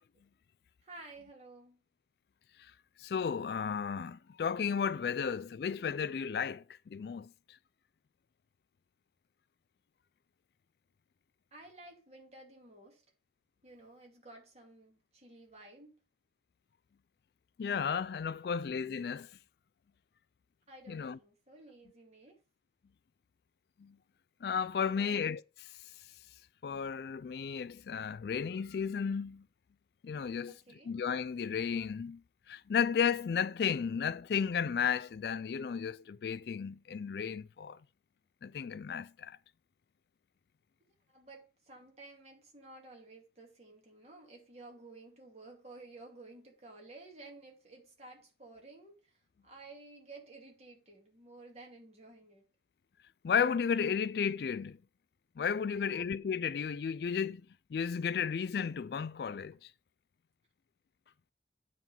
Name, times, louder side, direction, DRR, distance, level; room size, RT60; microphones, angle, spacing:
voice 1, 0.8-1.8 11.5-13.0 13.6-16.0 20.7-22.4 24.8-25.2 30.5-30.9 41.1-49.2 49.4-52.4 55.8-56.1, right 2 dB, 35° right, 2.3 m, -53 dB
voice 2, 3.0-7.6 17.6-19.3 20.9-21.2 23.8-24.0 24.4-25.4 26.6-29.5 30.0-32.2 32.5-37.8 38.4-39.4 53.2-54.8 55.4-57.5 57.7-59.7, left 6 dB, 60° left, 0.3 m, -33 dB
9.0 x 3.8 x 5.6 m
head